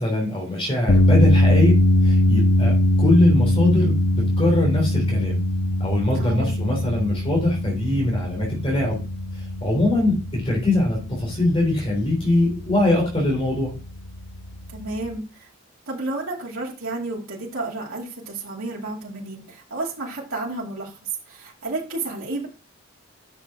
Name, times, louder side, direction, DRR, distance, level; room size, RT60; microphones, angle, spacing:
voice 1, 0.0-1.8 2.0-5.4 5.8-9.0 9.6-13.7, left 1 dB, 25° left, -1 dB, 3.2 m, -22 dB
sound 1, 0.9-15.2, left 1 dB, 85° left, 0.9 m, -22 dB
voice 2, 6.1-6.6 14.7-15.5 15.9-22.5, right 2 dB, 80° right, -3 dB, 2.7 m, -31 dB
10.5 x 6.5 x 3.6 m, 0.34 s
head